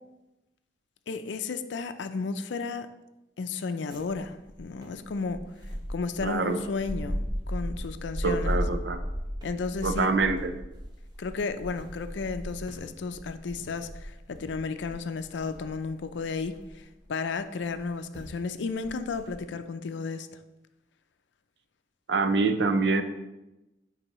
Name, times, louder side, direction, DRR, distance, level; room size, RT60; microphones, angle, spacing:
voice 1, 1.1-2.9 3.4-5.4 5.9-8.6 9.4-10.1 11.2-20.3, left 4 dB, 80° left, 10 dB, 0.4 m, -33 dB
sound 1, 3.9-17.0 17.7-17.9 18.1-18.4 18.7-19.4, equal, 20° right, 0.8 m, -36 dB
voice 2, 6.2-6.6 8.2-9.0 9.8-10.5 22.1-23.0, right 3 dB, 70° right, 9 dB, 0.5 m, -25 dB
9.8 x 4.0 x 3.0 m, 0.99 s
head